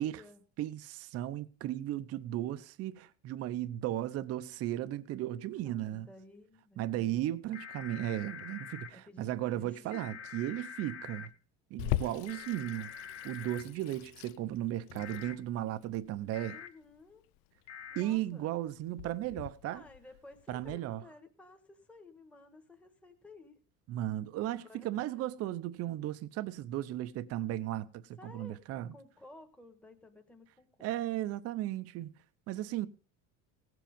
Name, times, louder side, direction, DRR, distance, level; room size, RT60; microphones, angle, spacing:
voice 1, 0.0-0.4 5.6-7.4 8.9-10.4 16.5-17.2 17.9-18.5 19.6-23.6 24.5-25.3 28.2-28.6 28.9-30.9, left 2 dB, 5° left, 1.4 m, -55 dB
voice 2, 0.6-6.1 6.8-11.3 11.7-12.9 13.2-16.6 18.0-19.8 20.5-21.0 23.9-28.9 30.8-32.1 32.5-32.9, right 13 dB, 45° right, 0.7 m, -35 dB
sound 1, 7.5-8.9 9.9-11.3 12.3-13.6 15.0-15.3 16.3-16.7 17.7-18.0, left 8 dB, 40° left, 1.2 m, -45 dB
Water tap faucet / Sink (filling or washing), 11.8-20.8, left 16 dB, 75° left, 0.6 m, -41 dB
17.5 x 7.7 x 5.2 m
cardioid pair, 150°, 35 cm